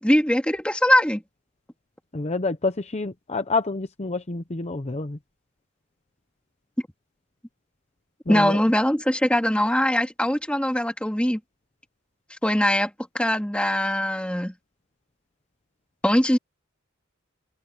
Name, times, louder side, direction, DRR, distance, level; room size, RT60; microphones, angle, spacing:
voice 1, 0.0-1.2 8.3-11.4 12.4-14.5 16.0-16.4, left 1 dB, 5° left, 2.3 m, -21 dB
voice 2, 2.1-5.2 8.3-8.6, left 3 dB, 35° left, 0.8 m, -28 dB
open air
head